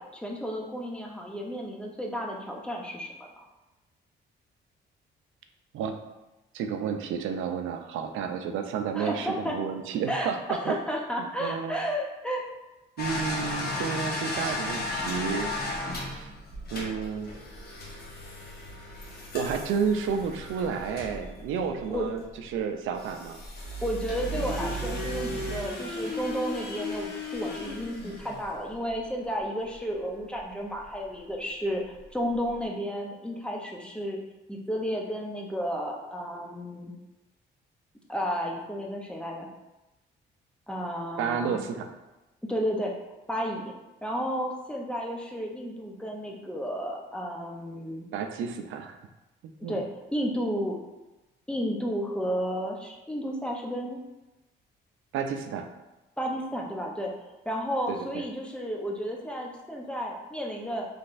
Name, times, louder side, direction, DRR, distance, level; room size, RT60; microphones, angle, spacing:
voice 1, 0.0-3.4 8.9-9.6 10.1-12.4 21.9-22.1 23.8-34.2 34.5-36.9 38.1-39.5 40.7-41.6 42.5-42.9 43.3-43.7 44.0-48.1 49.7-50.8 51.5-54.0 56.2-57.1 57.5-60.9, equal, 5° left, -1 dB, 0.7 m, -32 dB
voice 2, 6.5-10.8 11.4-11.8 13.0-15.5 16.0-16.3 16.7-17.3 19.3-23.4 41.2-41.9 48.1-49.0 49.6-49.8 55.1-55.7 57.9-58.2, right 6 dB, 85° right, 6 dB, 0.4 m, -31 dB
sound 1, 13.0-22.3 22.9-28.9 30.4-30.5 30.8-30.9 32.0-32.1 32.3-32.5, left 1 dB, 50° left, 1.1 m, -35 dB
4.1 x 3.2 x 2.5 m, 1.0 s
cardioid pair, 90°, 20 cm